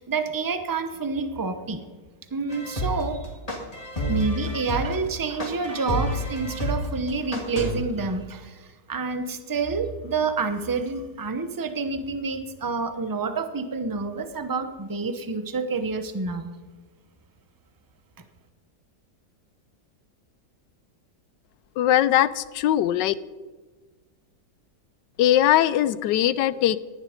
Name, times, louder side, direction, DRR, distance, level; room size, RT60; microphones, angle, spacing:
voice 1, 0.0-1.8 2.3-3.3 4.1-16.5, right 4 dB, 20° right, 9 dB, 0.5 m, -28 dB
sound 1, 2.5-7.7, equal, 20° left, 2.3 m, -29 dB
voice 2, 21.8-23.1 25.2-26.8, left 12 dB, 85° left, 17 dB, 1.3 m, -20 dB
18.5 x 10.5 x 5.1 m, 1.3 s
omnidirectional pair, 1.8 m